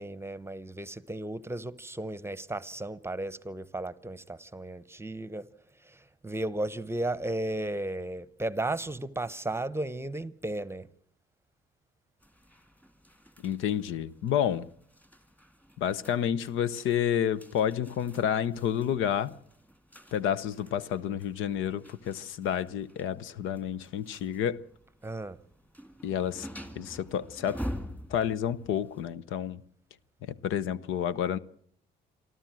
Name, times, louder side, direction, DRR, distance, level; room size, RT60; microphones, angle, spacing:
voice 1, 0.0-5.5 5.8-10.9 25.0-25.4, right 1 dB, 10° right, 0.9 m, -34 dB
sound 1, 12.2-29.1, equal, 5° left, 2.3 m, -47 dB
voice 2, 13.4-14.7 15.8-19.4 20.1-24.6 26.0-26.5 26.8-27.6 28.1-29.6 30.2-31.4, left 9 dB, 85° left, 0.9 m, -30 dB
27.0 x 13.0 x 7.6 m
cardioid pair, 90°, 20 cm